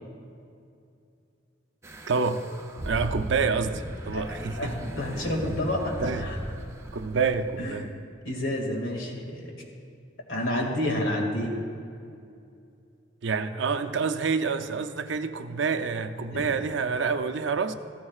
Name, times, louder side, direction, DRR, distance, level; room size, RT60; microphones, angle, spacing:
sound 1, 1.8-7.8, right 1 dB, 15° right, 0.5 m, -38 dB
voice 1, 2.1-2.4 2.8-4.7 6.0-6.3 6.9-7.9 13.2-17.7, right 5 dB, 70° right, 9 dB, 0.5 m, -27 dB
voice 2, 4.1-4.7 5.0-6.4 7.6-7.9 8.2-9.5 10.3-11.5 16.3-16.5, left 1 dB, 80° left, 0 dB, 2.2 m, -29 dB
15.5 x 14.5 x 2.4 m, 2.5 s
head